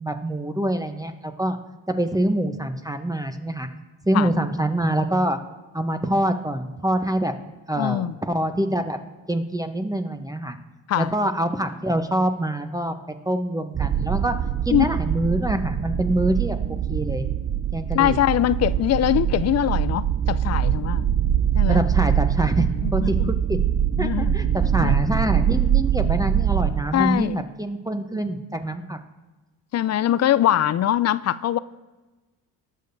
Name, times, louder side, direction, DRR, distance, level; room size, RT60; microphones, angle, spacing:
voice 1, 0.0-1.6 1.9-3.7 4.1-5.4 5.7-7.3 7.7-9.0 9.3-10.6 11.0-12.9 13.3-14.3 14.7-16.6 16.9-17.3 17.7-18.2 21.7-23.6 24.0-29.0, right 1 dB, 10° right, 0.9 m, -25 dB
voice 2, 7.8-8.1 10.9-11.1 14.7-14.9 17.9-21.1 21.5-21.8 22.6-23.4 24.0-24.3 24.8-24.9 26.9-27.4 29.7-31.6, left 12 dB, 40° left, 0.5 m, -22 dB
sound 1, 13.7-26.8, right 10 dB, 25° right, 0.5 m, -23 dB
19.5 x 6.5 x 2.7 m
hypercardioid pair, 60°, 42 cm